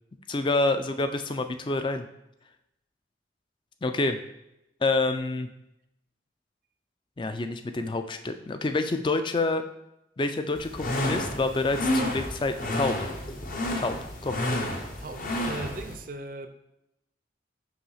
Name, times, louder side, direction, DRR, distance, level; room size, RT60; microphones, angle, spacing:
voice 1, 0.3-2.1 3.8-4.2 4.8-5.5 7.2-9.6 10.2-12.9 13.8-14.0 14.2-14.4, left 2 dB, 25° left, 8 dB, 0.4 m, -27 dB
sound 1, 10.6-15.9, left 1 dB, 45° left, 0.8 m, -30 dB
voice 2, 15.0-16.5, right 2 dB, 50° right, 8 dB, 0.5 m, -38 dB
5.7 x 3.1 x 5.6 m, 0.84 s
head